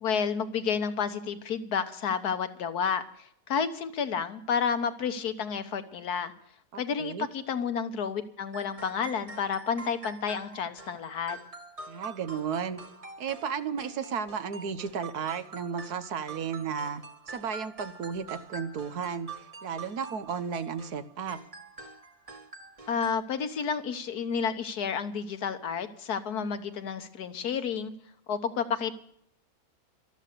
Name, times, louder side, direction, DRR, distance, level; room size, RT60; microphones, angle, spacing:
voice 1, 0.0-6.3 6.8-11.4 22.9-27.9 28.3-28.9, left 6 dB, 90° left, 9 dB, 1.7 m, -31 dB
voice 2, 6.7-7.3 11.9-12.8 13.2-19.3 19.6-21.4, right 6 dB, 80° right, 11 dB, 1.6 m, -34 dB
sound 1, 8.5-23.1, right 3 dB, 25° right, 1.0 m, -45 dB
13.0 x 12.5 x 6.7 m, 0.70 s
omnidirectional pair, 1.6 m